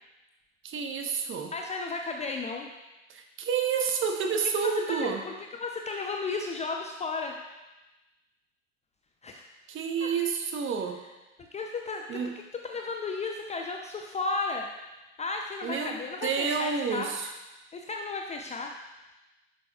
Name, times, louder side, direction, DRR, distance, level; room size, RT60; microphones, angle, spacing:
voice 1, 0.6-1.5 3.1-5.2 9.7-11.0 12.1-12.3 15.6-16.0 16.2-17.3, right 6 dB, 30° right, 4 dB, 1.0 m, -29 dB
voice 2, 1.5-2.7 4.6-7.4 9.2-9.5 10.0-10.1 11.4-12.2 12.6-14.7 15.2-17.2 17.7-18.7, left 3 dB, 20° left, 2 dB, 0.5 m, -34 dB
11.0 x 6.1 x 2.3 m, 1.1 s
hypercardioid pair, 85°, 39 cm